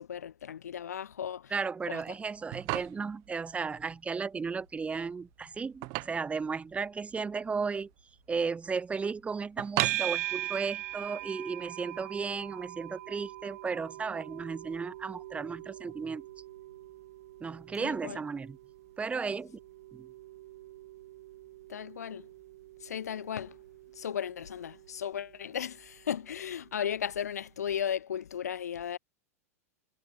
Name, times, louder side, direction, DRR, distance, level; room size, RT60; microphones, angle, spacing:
voice 1, 0.0-1.5 1.9-2.0 17.8-18.2 21.7-22.3 22.8-23.6 23.9-29.0, left 9 dB, 90° left, 0.8 m, -35 dB
voice 2, 1.5-7.9 8.3-16.2 17.4-18.6 19.0-19.6 19.9-20.1, right 5 dB, 15° right, 1.8 m, -34 dB
sound 1, 2.2-11.2, right 33 dB, 50° right, 0.7 m, -40 dB
sound 2, 9.8-27.0, right 16 dB, 65° right, 2.4 m, -41 dB
hypercardioid pair, 115°, 8 cm